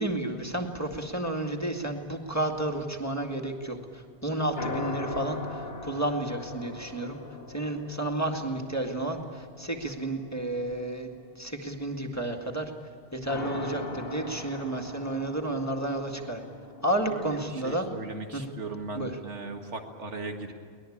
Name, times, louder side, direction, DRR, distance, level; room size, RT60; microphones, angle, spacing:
voice 1, 0.0-7.2 7.5-12.7 13.1-16.4 16.8-17.9 18.3-18.5 19.0-19.2, right 1 dB, 15° left, 1 dB, 2.0 m, -31 dB
sound 1, 4.5-10.8 13.3-17.5, left 2 dB, 55° left, 1.4 m, -40 dB
voice 2, 17.1-20.5, right 2 dB, 90° right, 4 dB, 2.2 m, -38 dB
23.5 x 20.0 x 8.7 m, 2.1 s
omnidirectional pair, 1.2 m